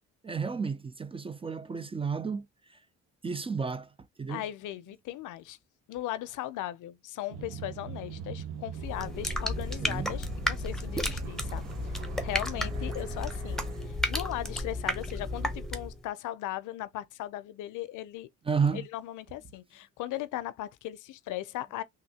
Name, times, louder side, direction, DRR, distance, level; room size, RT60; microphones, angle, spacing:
voice 1, 0.2-2.5 3.2-3.9 4.2-4.4 9.8-10.1 18.5-18.9, right 5 dB, 20° right, 0.3 m, -31 dB
voice 2, 4.3-5.6 5.9-11.7 12.2-18.3 18.7-21.8, left 14 dB, 80° left, 0.5 m, -38 dB
sound 1, 7.3-15.4, right 7 dB, 65° right, 1.0 m, -43 dB
sound 2, 8.7-16.0, left 1 dB, ahead, 0.8 m, -33 dB
3.4 x 2.6 x 2.8 m
cardioid pair, 90°, 30 cm